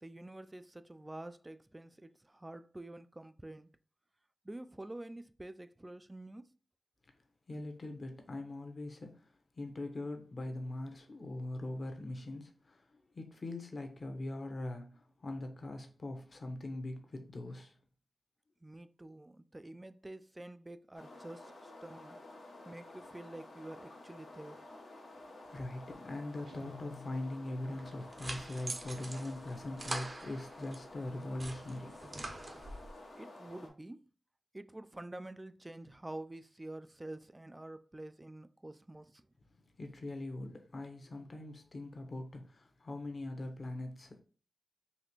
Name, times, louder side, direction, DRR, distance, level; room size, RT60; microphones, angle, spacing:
voice 1, 0.0-3.7 4.4-6.5 18.6-22.2 22.6-24.6 33.2-34.1 34.5-39.3, right 1 dB, 20° right, 0.3 m, -48 dB
voice 2, 7.5-9.3 9.6-12.8 13.1-15.0 15.2-17.7 25.5-32.0 39.8-44.2, left 1 dB, 50° left, 0.8 m, -41 dB
sound 1, 20.9-33.7, left 2 dB, 85° left, 1.0 m, -52 dB
Guitar, 26.4-28.1, left 6 dB, 80° right, 0.8 m, -54 dB
sound 2, 27.8-30.8 31.2-32.9, right 2 dB, 45° right, 0.7 m, -44 dB
4.1 x 2.6 x 2.9 m
cardioid pair, 55°, 0 cm